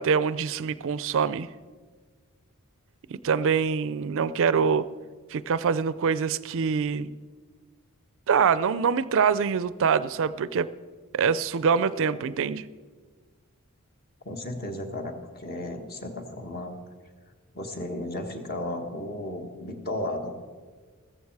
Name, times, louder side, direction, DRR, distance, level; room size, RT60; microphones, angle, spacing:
voice 1, 0.0-1.5 3.1-4.9 5.3-7.1 8.3-10.7 11.1-12.6, right 6 dB, 60° right, 16 dB, 0.4 m, -24 dB
voice 2, 14.2-16.8 17.5-20.3, left 1 dB, 45° left, 4 dB, 1.6 m, -34 dB
14.5 x 14.0 x 4.7 m, 1.5 s
head